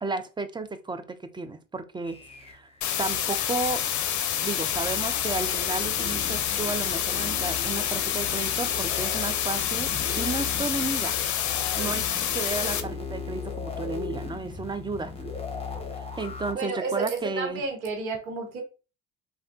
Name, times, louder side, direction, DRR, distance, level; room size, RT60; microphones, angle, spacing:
voice 1, 0.0-2.2 2.5-2.7 3.0-3.8 4.4-11.2 11.8-12.1 12.3-15.1 15.9-17.6, right 3 dB, 10° right, 0.3 m, -33 dB
sound 1, 2.0-16.5, left 4 dB, 15° left, 1.0 m, -38 dB
sound 2, 2.8-12.8, left 9 dB, 45° left, 0.6 m, -28 dB
voice 2, 11.8-12.3 16.6-18.6, right 4 dB, 90° right, 1.1 m, -32 dB
3.4 x 2.2 x 2.5 m
hypercardioid pair, 65°, 42 cm